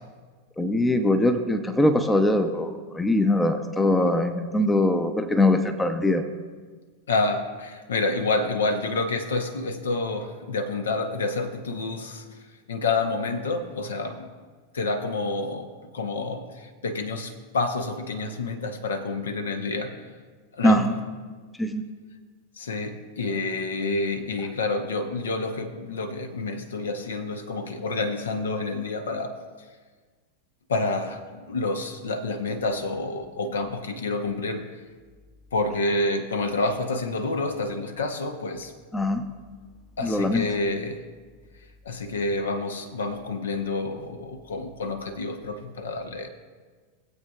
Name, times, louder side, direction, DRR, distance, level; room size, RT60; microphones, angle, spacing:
voice 1, 0.6-6.2 20.6-21.0 21.6-21.9 24.4-24.5 38.9-39.2 40.0-40.5, left 1 dB, 10° left, 8 dB, 0.6 m, -22 dB
voice 2, 7.1-12.2 12.7-14.3 14.7-20.0 20.5-20.8 22.6-29.4 30.7-34.6 35.5-38.7 40.0-41.0 41.8-46.3, left 3 dB, 65° left, 8 dB, 0.8 m, -28 dB
19.0 x 8.0 x 2.4 m, 1.5 s
figure-of-eight pair, 90°, 0 cm